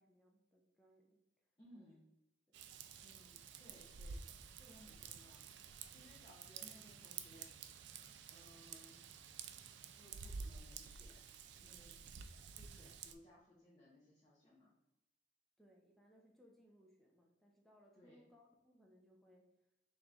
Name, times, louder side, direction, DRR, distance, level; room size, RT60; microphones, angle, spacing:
voice 1, 0.0-1.9 2.5-2.7 15.6-19.7, equal, ahead, -1 dB, 0.5 m, -68 dB
voice 2, 1.6-2.0 3.0-4.3 4.6-7.8 8.3-8.9 10.0-11.3 11.6-12.0 12.5-14.7 18.0-18.3, left 1 dB, 25° left, -7 dB, 0.9 m, -63 dB
Raindrop / Vehicle horn car horn honking / Trickle dribble, 2.5-13.1, right 6 dB, 75° right, 0.3 m, -51 dB
3.8 x 3.0 x 3.4 m, 0.94 s
head